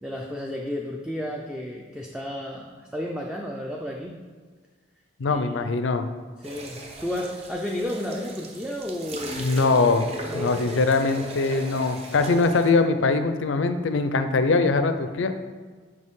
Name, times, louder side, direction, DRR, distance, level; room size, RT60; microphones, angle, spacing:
voice 1, 0.0-4.1 5.3-5.7 6.4-9.7 10.2-10.5, left 1 dB, 5° right, -1 dB, 0.4 m, -32 dB
voice 2, 5.2-6.1 9.4-10.1 10.3-15.3, left 3 dB, 75° left, 9 dB, 0.5 m, -22 dB
sound 1, 6.4-12.7, right 1 dB, 30° right, 0.8 m, -37 dB
6.6 x 5.2 x 3.6 m, 1.5 s
head